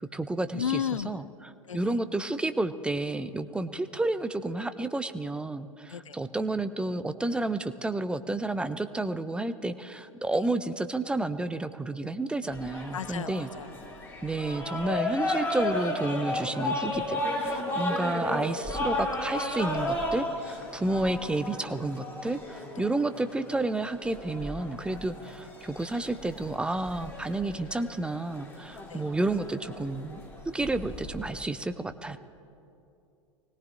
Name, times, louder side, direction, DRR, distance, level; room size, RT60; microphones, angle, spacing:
voice 1, 0.0-13.5 14.2-30.2 30.5-32.2, right 2 dB, 5° right, 10 dB, 0.4 m, -31 dB
voice 2, 0.5-1.1 1.7-1.9 5.9-6.1 12.9-13.7 17.7-17.8 22.8-22.9 28.9-29.0, left 8 dB, 75° left, 17 dB, 0.5 m, -33 dB
sound 1, 12.5-31.4, left 1 dB, 15° left, 2.7 m, -34 dB
24.0 x 18.0 x 2.5 m, 2.7 s
figure-of-eight pair, 95°, 17 cm